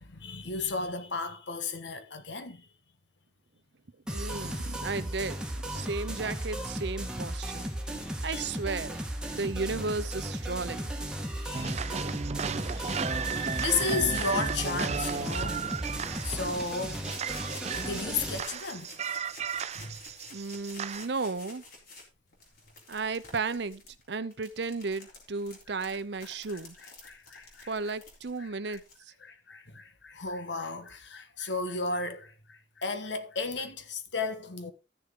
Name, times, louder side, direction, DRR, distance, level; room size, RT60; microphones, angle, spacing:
voice 1, 0.0-2.6 8.0-8.4 11.3-11.7 12.7-15.6 16.2-17.0 17.8-18.9 19.7-20.0 27.0-27.7 28.7-28.8 29.2-34.7, left 4 dB, 70° left, 1.4 m, -34 dB
sound 1, 4.1-18.4, right 1 dB, 5° right, 1.6 m, -35 dB
voice 2, 4.1-7.7 8.2-9.0 9.4-11.1 20.3-21.6 22.9-23.8 24.1-26.8 27.7-29.1, right 4 dB, 65° right, 0.7 m, -34 dB
sound 2, 11.5-21.1, right 6 dB, 35° right, 0.4 m, -34 dB
sound 3, 16.0-29.0, left 3 dB, 55° left, 3.7 m, -51 dB
13.5 x 6.8 x 3.8 m
head